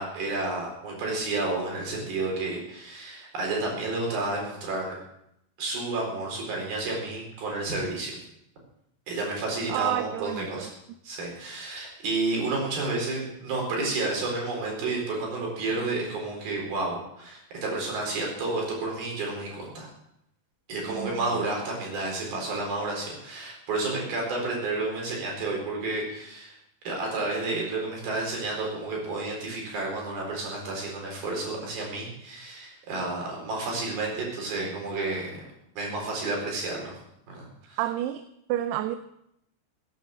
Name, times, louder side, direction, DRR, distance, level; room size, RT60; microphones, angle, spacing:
voice 1, 0.0-5.0 5.6-8.2 9.1-10.7 11.0-19.9 20.7-26.5 26.9-35.4 35.8-37.0 37.3-37.8, right 2 dB, 65° right, -1 dB, 6.2 m, -31 dB
voice 2, 9.7-10.7 20.9-21.4 37.8-38.2 38.5-39.0, right 13 dB, 85° right, 11 dB, 2.7 m, -30 dB
16.5 x 9.6 x 6.6 m, 0.79 s
omnidirectional pair, 4.7 m